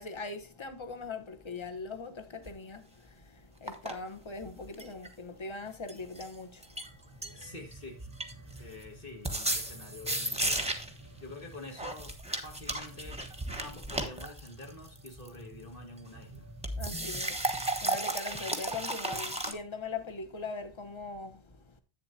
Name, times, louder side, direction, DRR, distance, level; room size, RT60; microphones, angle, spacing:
voice 1, 0.0-6.9 7.3-7.4 16.8-21.8, left 4 dB, 30° left, 1.0 m, -41 dB
sound 1, 2.5-2.6 3.7-4.0 4.4-5.1 5.9-6.3 6.6-6.9 7.2-7.7 8.0-8.8 9.2-11.0 11.8-15.3 16.6-19.5, right 1 dB, 5° right, 1.1 m, -34 dB
sound 2, 6.8-18.1 18.7-18.8, right 1 dB, 15° left, 2.9 m, -52 dB
voice 2, 7.3-8.0 8.6-10.6 11.2-12.1 12.4-13.2 13.6-16.5, left 2 dB, 55° left, 2.0 m, -47 dB
10.5 x 8.3 x 2.7 m
omnidirectional pair, 1.1 m